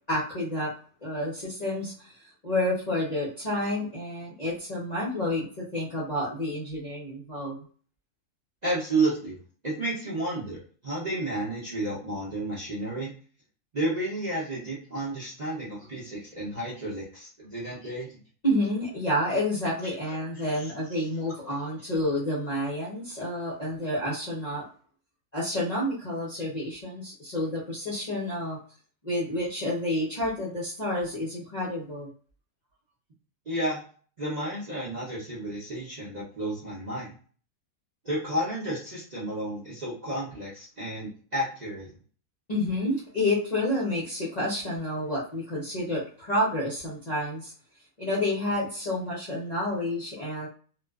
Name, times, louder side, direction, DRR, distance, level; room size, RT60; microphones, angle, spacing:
voice 1, 0.1-0.7 1.0-7.6 18.4-24.6 25.3-28.6 29.0-32.1 42.5-47.5 48.0-50.5, left 1 dB, 45° left, -7 dB, 0.5 m, -29 dB
voice 2, 8.6-9.4 9.6-13.1 13.7-18.2 19.8-20.7 21.0-21.1 21.4-21.5 33.5-33.8 34.2-37.1 38.0-41.9, right 1 dB, 40° right, -7 dB, 0.6 m, -32 dB
2.4 x 2.3 x 2.3 m, 0.42 s
omnidirectional pair, 1.6 m